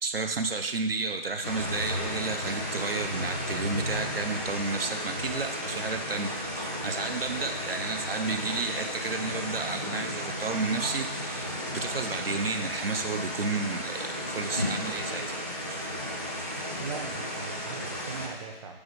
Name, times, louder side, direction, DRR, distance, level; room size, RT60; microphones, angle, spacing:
voice 1, 0.0-15.3 15.7-15.8, right 4 dB, 75° right, 6 dB, 0.6 m, -32 dB
sound 1, 1.4-18.3, equal, 15° right, 0.4 m, -34 dB
voice 2, 16.8-18.8, right 5 dB, 35° right, 3 dB, 0.8 m, -40 dB
6.2 x 4.8 x 5.2 m, 1.1 s
figure-of-eight pair, 140°, 30 cm